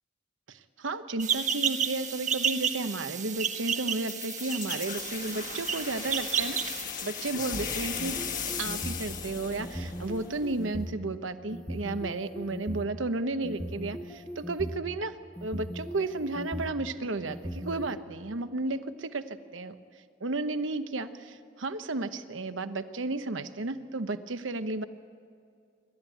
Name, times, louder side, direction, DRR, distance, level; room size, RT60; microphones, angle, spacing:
voice 1, 0.5-8.2 8.6-15.1 15.4-19.7 20.2-24.8, right 2 dB, 75° right, 10 dB, 1.0 m, -33 dB
sound 1, 1.2-6.8, right 7 dB, 40° right, 1.3 m, -31 dB
sound 2, 4.1-10.7, left 6 dB, 45° left, 1.7 m, -37 dB
sound 3, 7.9-9.1 9.6-10.9 11.5-12.8 13.4-14.8 15.4-16.7 17.3-17.9, equal, 5° left, 1.3 m, -38 dB
27.5 x 12.5 x 9.1 m, 2.4 s
head